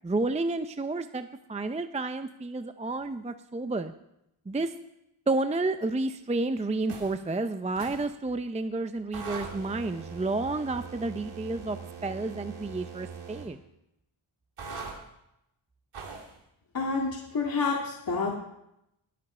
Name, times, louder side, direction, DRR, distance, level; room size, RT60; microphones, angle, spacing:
voice 1, 0.0-3.9 4.5-4.7 5.3-13.6, right 2 dB, 15° right, 9 dB, 0.6 m, -30 dB
sound 1, 6.9-7.2 7.8-8.1 9.1-13.5 14.6-15.0 15.9-16.3, right 5 dB, 90° right, 2.4 m, -41 dB
voice 2, 16.7-18.3, left 4 dB, 45° left, -3 dB, 2.1 m, -28 dB
21.0 x 7.7 x 4.4 m, 0.82 s
cardioid pair, 85°, 49 cm